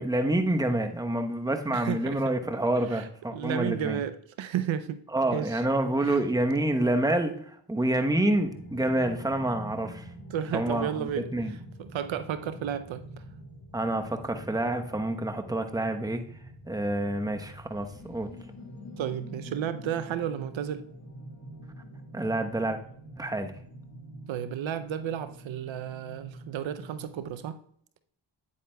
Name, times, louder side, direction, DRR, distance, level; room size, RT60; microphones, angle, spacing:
voice 1, 0.0-4.0 5.1-7.3 7.7-10.0 10.5-11.5 13.7-16.2 16.7-18.3 22.1-22.8 23.2-23.5, right 1 dB, 10° right, 6 dB, 0.9 m, -27 dB
voice 2, 1.7-2.2 2.9-5.0 5.3-5.6 6.0-6.2 10.3-13.0 19.0-20.8 24.3-27.6, right 9 dB, 75° right, 12 dB, 0.6 m, -33 dB
sound 1, 8.1-27.4, equal, 35° left, 1.9 m, -46 dB
9.2 x 8.5 x 2.2 m, 0.63 s
cardioid pair, 45°, 47 cm